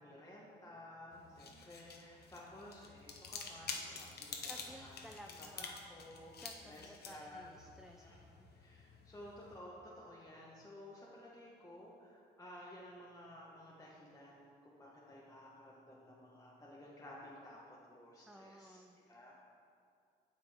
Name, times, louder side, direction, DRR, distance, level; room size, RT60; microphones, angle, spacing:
voice 1, 0.0-7.5 7.9-8.2 8.5-18.8 19.1-19.3, left 1 dB, 15° left, -5 dB, 1.0 m, -54 dB
sound 1, 1.1-9.6, left 5 dB, 55° left, 0.8 m, -49 dB
voice 2, 4.5-5.8 6.4-8.5 18.3-19.0, equal, ahead, 3 dB, 0.4 m, -56 dB
8.9 x 6.0 x 3.4 m, 2.4 s
cardioid pair, 90°, 20 cm